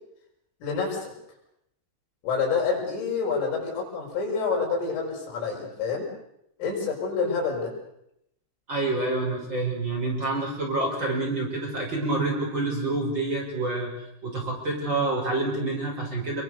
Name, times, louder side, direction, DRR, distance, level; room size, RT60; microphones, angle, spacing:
voice 1, 0.6-1.1 2.2-6.1 6.6-7.7, left 5 dB, 75° left, -1 dB, 8.7 m, -27 dB
voice 2, 8.7-13.9 14.2-16.4, right 2 dB, 20° right, -1 dB, 6.3 m, -27 dB
29.0 x 23.0 x 6.8 m, 0.79 s
omnidirectional pair, 5.8 m